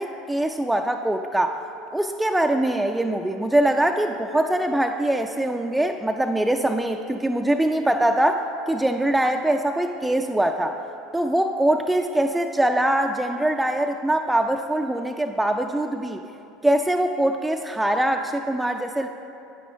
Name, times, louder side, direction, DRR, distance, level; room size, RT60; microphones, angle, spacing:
voice 1, 0.0-1.6 1.9-10.8 11.1-16.2 16.6-19.1, right 1 dB, 5° right, 4 dB, 0.3 m, -23 dB
10.5 x 9.4 x 2.7 m, 2.8 s
figure-of-eight pair, 70°, 0 cm